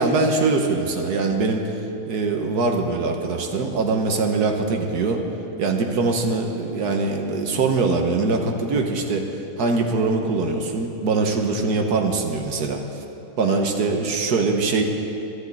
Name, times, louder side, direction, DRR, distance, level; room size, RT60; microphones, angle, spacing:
voice 1, 0.0-1.8 2.1-5.2 5.6-9.3 9.6-12.8 13.4-14.8, right 3 dB, 80° right, 3 dB, 1.7 m, -22 dB
12.5 x 11.0 x 8.5 m, 2.8 s
omnidirectional pair, 1.7 m